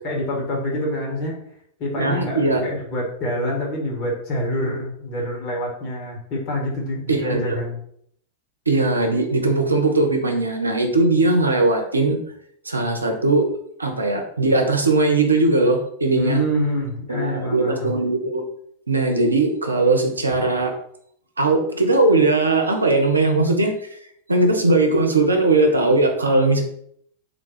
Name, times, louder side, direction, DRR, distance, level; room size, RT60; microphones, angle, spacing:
voice 1, 0.0-1.4 1.8-7.8 16.1-18.0, left 1 dB, 40° left, -2 dB, 1.5 m, -26 dB
voice 2, 2.0-2.6 7.1-7.6 8.7-12.2 12.6-13.4 13.8-16.4 17.1-18.4 18.9-20.7 21.4-23.8 24.3-26.6, right 2 dB, 80° right, 3 dB, 0.6 m, -19 dB
3.4 x 2.3 x 3.9 m, 0.68 s
figure-of-eight pair, 90°, 0 cm